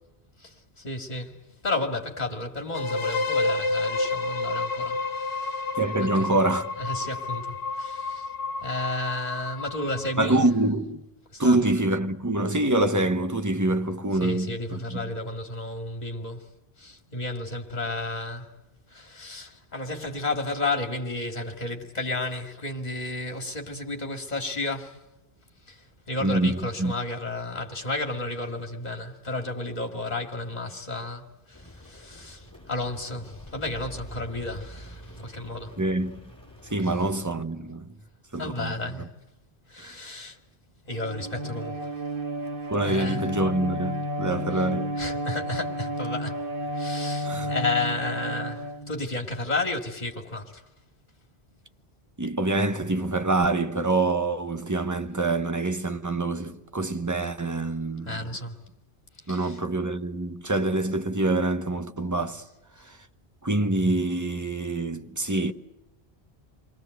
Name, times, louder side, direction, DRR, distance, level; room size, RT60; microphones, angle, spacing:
voice 1, 0.8-1.4 1.6-5.6 6.0-6.3 6.8-8.3 8.6-10.4 11.3-11.7 14.2-16.5 16.8-18.5 18.9-25.0 25.7-25.8 26.1-35.8 38.4-39.1 39.7-40.4 40.9-41.9 42.8-43.2 45.0-46.4 46.7-50.6 58.1-58.5 59.3-59.6, left 2 dB, 40° left, 2.5 m, -32 dB
sound 1, 2.7-10.5, left 3 dB, 70° left, 1.4 m, -30 dB
voice 2, 5.7-6.7 10.2-11.0 11.4-15.1 26.2-26.9 35.8-36.2 36.6-37.9 38.3-39.1 39.8-39.9 42.7-45.0 47.2-47.5 52.2-58.3 59.3-62.4 62.9-63.0 63.4-65.5, right 2 dB, 15° right, 1.1 m, -26 dB
Rain, 31.5-37.3, equal, 15° left, 5.6 m, -45 dB
Bowed string instrument, 40.9-49.3, equal, 55° right, 1.8 m, -32 dB
28.5 x 22.5 x 8.0 m
omnidirectional pair, 1.1 m